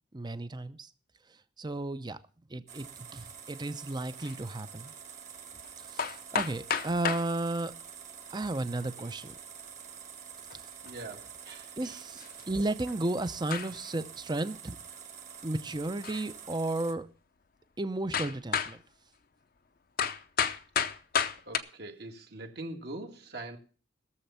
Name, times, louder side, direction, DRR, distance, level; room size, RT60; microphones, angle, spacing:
voice 1, 0.1-0.9 1.6-2.2 2.5-4.9 5.9-7.7 8.3-9.3 11.8-14.8 15.4-17.1 17.8-18.8, right 2 dB, 25° right, 12 dB, 0.7 m, -33 dB
sound 1, 2.7-16.9, right 7 dB, 40° right, 1.7 m, -47 dB
sound 2, 4.2-4.4 5.6-5.7 6.0-7.3 8.6-9.1 10.5-10.6 10.9-11.0 12.2-12.4 12.9-13.0 13.5-13.9 16.0-16.3 17.0-17.1 18.1-18.8 20.0-21.6, left 7 dB, 50° left, 0.7 m, -32 dB
voice 2, 10.8-12.0 21.5-23.6, right 2 dB, 60° right, 3 dB, 2.0 m, -43 dB
17.0 x 7.1 x 5.6 m, 0.38 s
head